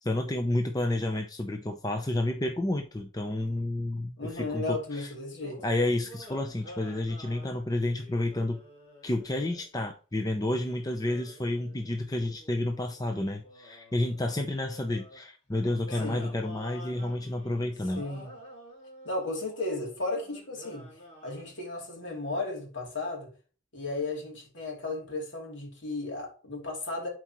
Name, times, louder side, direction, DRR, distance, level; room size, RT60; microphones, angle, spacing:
voice 1, 0.0-5.1 5.6-8.6 9.0-18.0, left 1 dB, 20° left, 0.6 m, -30 dB
voice 2, 4.2-5.6 15.9-16.3 17.9-18.3 19.0-23.3 23.7-27.1, left 2 dB, 65° left, 3.0 m, -35 dB
sound 1, 5.4-9.7 10.3-15.2 15.9-21.6, left 1 dB, 35° left, 2.9 m, -49 dB
11.5 x 4.6 x 3.0 m
head